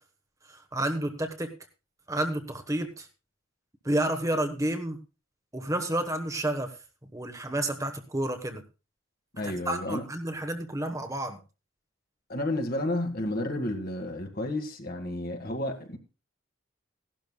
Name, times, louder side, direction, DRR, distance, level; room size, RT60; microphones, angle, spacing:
voice 1, 0.5-1.5 2.1-3.1 3.8-5.0 5.5-6.7 7.1-8.6 9.4-11.4, right 1 dB, 15° right, 1.1 m, -30 dB
voice 2, 9.3-10.0 12.3-16.0, left 1 dB, 45° left, 1.8 m, -31 dB
17.0 x 12.0 x 2.3 m
head